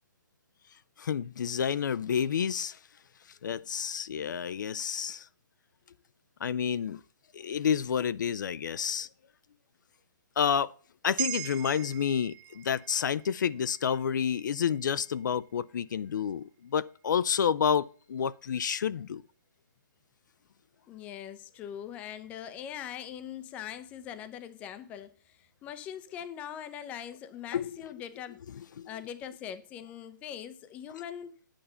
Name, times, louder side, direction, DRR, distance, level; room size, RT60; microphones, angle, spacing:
voice 1, 1.0-2.8 3.4-5.3 6.4-7.0 7.3-9.1 10.4-10.7 11.0-19.2 27.5-27.7 28.8-28.9, left 7 dB, 65° left, 0.4 m, -29 dB
sound 1, 11.2-15.7 16.1-16.2, right 15 dB, 30° right, 0.6 m, -41 dB
voice 2, 20.9-28.4 28.9-31.3, left 9 dB, 15° left, 0.5 m, -42 dB
8.9 x 5.7 x 6.7 m
hypercardioid pair, 165°, 11 cm